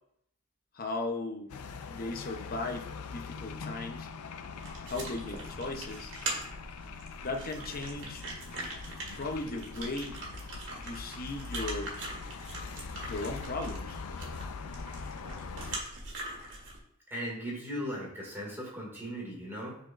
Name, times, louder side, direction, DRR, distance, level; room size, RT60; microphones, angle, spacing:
voice 1, 0.7-1.5 1.9-4.1 4.9-6.1 7.2-8.3 9.2-10.2 10.7-11.9 13.0-14.0, left 2 dB, 45° left, 4 dB, 0.8 m, -37 dB
sound 1, 1.5-15.8, left 5 dB, 75° left, 0.4 m, -43 dB
sound 2, 4.6-16.8, right 2 dB, 60° right, 1.8 m, -42 dB
voice 2, 17.1-19.8, equal, 10° right, -4 dB, 2.2 m, -38 dB
9.4 x 4.3 x 2.5 m, 0.71 s
head